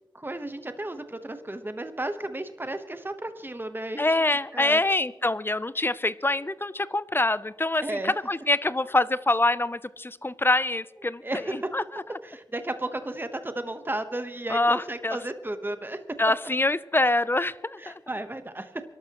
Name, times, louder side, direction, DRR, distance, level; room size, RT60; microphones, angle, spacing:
voice 1, 0.1-4.2 4.5-4.8 5.8-5.9 7.8-8.1 11.2-11.7 12.2-16.0 17.8-18.8, right 1 dB, 25° right, 9 dB, 1.0 m, -33 dB
voice 2, 4.0-11.2 11.7-12.0 14.5-15.2 16.2-17.9, left 2 dB, 25° left, 17 dB, 0.5 m, -25 dB
27.5 x 12.0 x 3.0 m, 1.1 s
wide cardioid pair, 55°, 9 cm